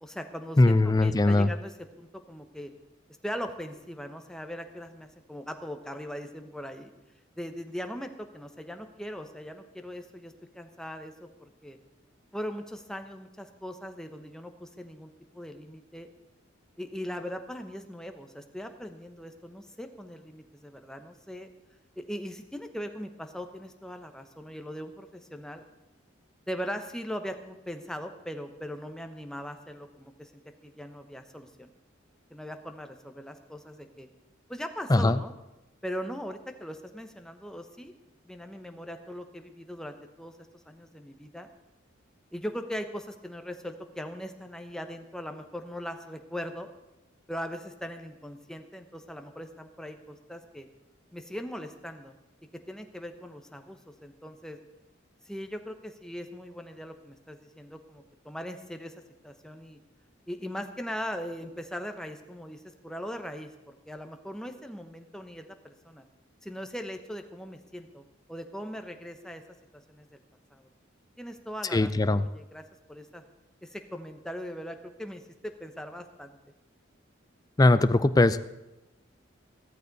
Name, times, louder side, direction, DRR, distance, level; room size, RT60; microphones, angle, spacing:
voice 1, 0.0-2.7 3.2-6.9 7.4-11.8 12.3-16.1 16.8-21.5 22.0-25.6 26.5-30.3 30.6-31.7 32.3-34.1 34.5-35.4 35.8-37.9 38.2-40.3 40.7-41.5 42.3-46.7 47.3-50.7 51.1-52.1 52.7-54.6 55.2-58.9 59.2-59.8 60.3-66.1 66.4-68.0 68.3-69.4 69.9-70.2 70.5-70.7 71.2-72.6 72.9-73.2 73.6-76.4, equal, 5° left, 6 dB, 0.9 m, -40 dB
voice 2, 0.6-1.5 34.9-35.2 71.7-72.2 77.6-78.4, left 2 dB, 20° left, 13 dB, 0.4 m, -20 dB
15.0 x 13.5 x 4.1 m, 0.97 s
head